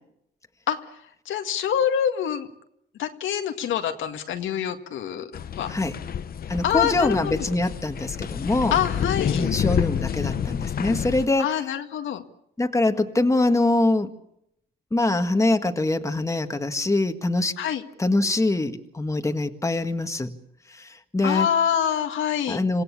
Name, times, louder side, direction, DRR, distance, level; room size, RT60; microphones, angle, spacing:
voice 1, 1.3-2.5 3.0-5.3 5.6-5.7 6.6-7.5 8.7-9.4 11.4-12.2 17.6-17.8 21.2-22.6, left 9 dB, 75° left, 6 dB, 2.0 m, -25 dB
sound 1, 5.3-11.3, left 8 dB, 50° left, 0.9 m, -28 dB
voice 2, 6.5-8.8 9.3-11.6 12.6-14.1 14.9-17.5 18.0-20.3 20.7-21.5 22.5-22.8, left 2 dB, 15° left, 6 dB, 1.8 m, -24 dB
27.0 x 16.5 x 8.5 m, 0.76 s
cardioid pair, 90°, 20 cm